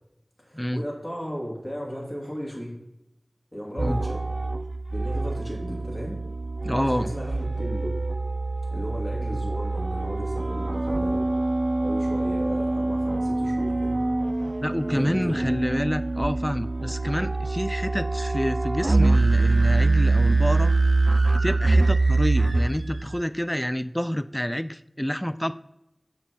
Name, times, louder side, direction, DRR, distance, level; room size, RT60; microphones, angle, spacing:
voice 1, 0.4-2.8 3.5-4.2 4.9-6.2 6.6-7.9 8.7-11.3 11.8-14.0 14.9-15.5, equal, 40° left, -3 dB, 2.3 m, -35 dB
sound 1, 3.8-23.2, right 2 dB, 65° right, 0.3 m, -24 dB
voice 2, 6.6-7.1 14.6-20.7 21.3-25.5, equal, 10° left, 13 dB, 0.3 m, -28 dB
5.8 x 4.4 x 6.2 m, 0.87 s
wide cardioid pair, 45°, 0 cm